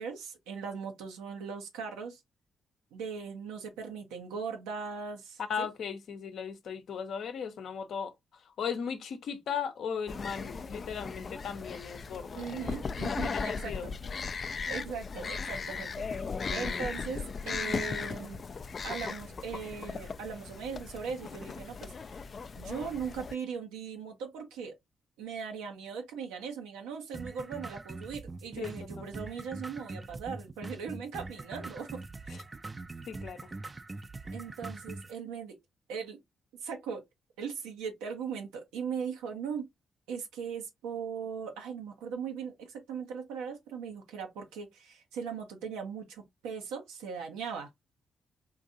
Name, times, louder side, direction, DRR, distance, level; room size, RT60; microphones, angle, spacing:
voice 1, 0.0-2.2 2.9-5.7 12.3-14.0 14.7-18.4 18.8-21.9 22.5-24.8 25.2-32.0 32.3-32.4 34.3-35.6 35.9-36.2 36.6-37.0 37.4-39.7 40.1-47.7, right 6 dB, 90° right, 0.7 m, -39 dB
voice 2, 5.5-12.8 13.0-13.9 28.6-29.1 32.3-32.4 33.0-33.5, left 7 dB, 70° left, 0.7 m, -37 dB
sound 1, 10.1-23.3, left 5 dB, 50° left, 0.3 m, -37 dB
sound 2, 27.1-35.1, right 3 dB, 30° right, 0.4 m, -43 dB
3.7 x 2.6 x 2.6 m
supercardioid pair, 50°, 0 cm